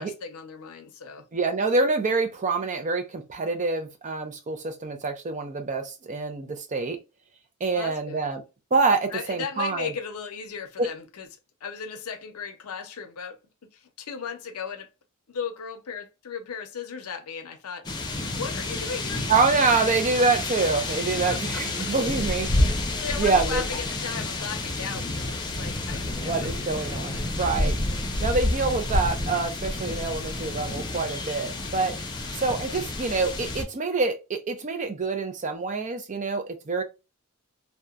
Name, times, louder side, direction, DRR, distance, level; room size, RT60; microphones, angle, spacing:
voice 1, 0.0-1.3 7.7-8.2 9.1-11.3 11.6-13.4 13.7-14.9 15.3-17.9 18.3-19.3 19.6-20.0 21.3-21.9 22.5-22.6 23.0-27.3, left 6 dB, 85° left, 0.6 m, -36 dB
voice 2, 1.3-7.0 7.6-8.4 8.7-9.9 10.8-10.9 19.3-22.5 23.2-23.6 26.2-27.8 28.2-32.0 32.3-36.8, right 4 dB, 35° right, 0.4 m, -26 dB
sound 1, 17.8-33.6, left 2 dB, 20° left, 0.5 m, -29 dB
2.8 x 2.1 x 2.3 m
head